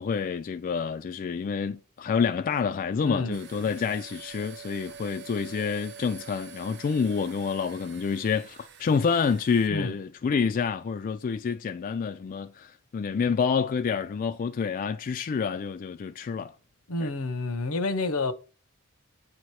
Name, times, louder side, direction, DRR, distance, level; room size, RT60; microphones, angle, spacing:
voice 1, 0.0-16.5 17.0-17.1, left 6 dB, 40° left, 0.3 m, -28 dB
voice 2, 3.0-3.4 6.9-7.0 9.7-9.9 16.9-18.3, left 2 dB, 75° left, 0.7 m, -29 dB
Dremel on off and increasing speed, 3.3-9.7, right 6 dB, 50° right, 0.7 m, -46 dB
8.6 x 2.9 x 4.6 m
head